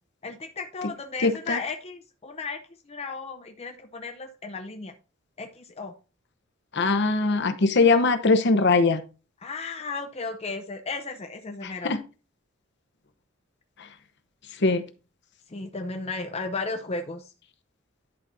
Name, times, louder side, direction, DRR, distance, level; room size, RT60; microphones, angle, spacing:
voice 1, 0.2-2.6 2.9-4.9 5.4-6.0 9.4-11.9 15.5-17.3, left 3 dB, 30° left, 6 dB, 0.6 m, -34 dB
voice 2, 1.2-1.6 6.7-9.0 11.6-12.0 14.6-14.8, left 3 dB, 55° left, 9 dB, 0.9 m, -21 dB
11.0 x 4.1 x 4.1 m, 0.33 s
head